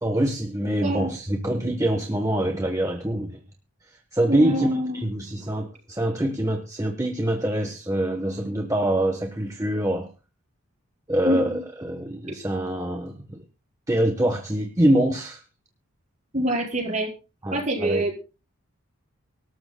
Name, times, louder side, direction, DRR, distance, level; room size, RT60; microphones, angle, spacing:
voice 1, 0.0-3.4 4.1-4.7 4.9-10.1 11.1-13.4 13.9-15.4 17.4-18.0, right 1 dB, 15° right, 5 dB, 1.0 m, -25 dB
voice 2, 0.8-1.1 4.3-5.0 11.2-11.6 12.3-12.4 16.3-17.1 17.5-18.2, right 1 dB, 35° right, -1 dB, 4.7 m, -25 dB
24.5 x 12.5 x 2.2 m, 0.32 s
head